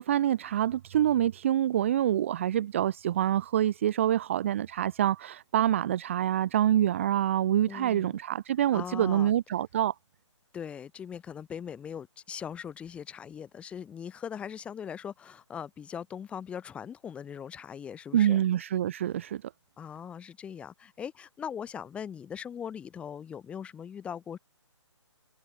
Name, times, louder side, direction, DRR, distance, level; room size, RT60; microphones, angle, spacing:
voice 1, 0.0-9.9 18.1-19.4, right 11 dB, 25° right, 0.7 m, -26 dB
voice 2, 7.7-8.2 8.7-9.3 10.5-18.4 19.8-24.4, left 8 dB, 5° left, 3.4 m, -40 dB
hypercardioid pair, 165°, 16 cm